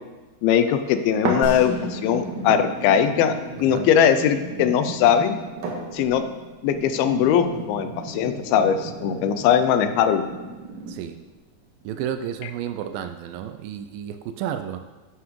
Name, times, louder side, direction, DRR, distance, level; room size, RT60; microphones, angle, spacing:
voice 1, 0.4-5.4 5.9-6.2 6.6-10.3, left 8 dB, 80° left, 9 dB, 2.4 m, -20 dB
sound 1, 1.2-11.2 11.8-11.9, right 2 dB, 65° right, 2.6 m, -33 dB
sound 2, 1.4-3.2 3.7-3.8, equal, 40° right, 1.6 m, -39 dB
voice 2, 10.9-11.2 11.8-14.8, right 9 dB, 85° right, 8 dB, 2.1 m, -31 dB
11.5 x 9.4 x 3.1 m, 1.3 s
omnidirectional pair, 4.5 m